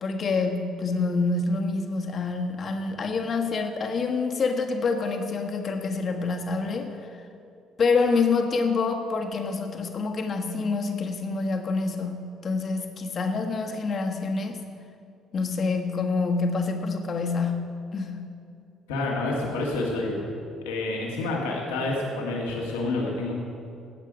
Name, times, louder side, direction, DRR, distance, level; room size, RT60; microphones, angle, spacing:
voice 1, 0.0-7.2 7.8-14.6 15.3-18.3, left 4 dB, 50° left, 4 dB, 1.5 m, -27 dB
voice 2, 18.9-20.2 20.7-23.3, left 2 dB, 85° left, -2 dB, 1.9 m, -28 dB
18.5 x 7.4 x 5.1 m, 2.5 s
hypercardioid pair, 55°, 0 cm